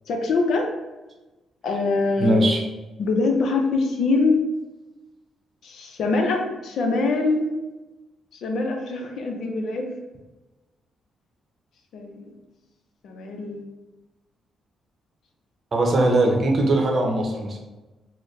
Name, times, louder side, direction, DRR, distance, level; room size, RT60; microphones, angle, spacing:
voice 1, 0.1-0.7 1.6-2.5 3.0-4.4 5.6-7.5 8.3-9.9 11.9-12.3 13.0-13.6, left 3 dB, 75° left, 2 dB, 0.6 m, -24 dB
voice 2, 2.2-2.6 15.7-17.6, right 1 dB, 45° right, 1 dB, 0.7 m, -20 dB
3.9 x 2.1 x 3.2 m, 1.1 s
cardioid pair, 95°, 0 cm